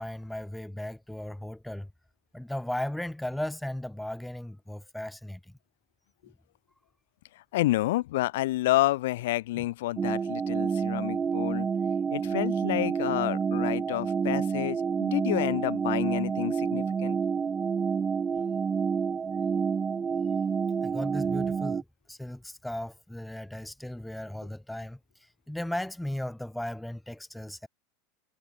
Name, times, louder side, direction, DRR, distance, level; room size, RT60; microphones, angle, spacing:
voice 1, 0.0-1.9 2.3-5.4 9.6-9.7 20.8-27.7, left 1 dB, 5° left, 1.3 m, -36 dB
voice 2, 7.5-11.7 12.1-17.2, left 17 dB, 65° left, 1.6 m, -29 dB
sound 1, 10.0-21.8, right 6 dB, 25° right, 0.6 m, -28 dB
figure-of-eight pair, 80°, 0 cm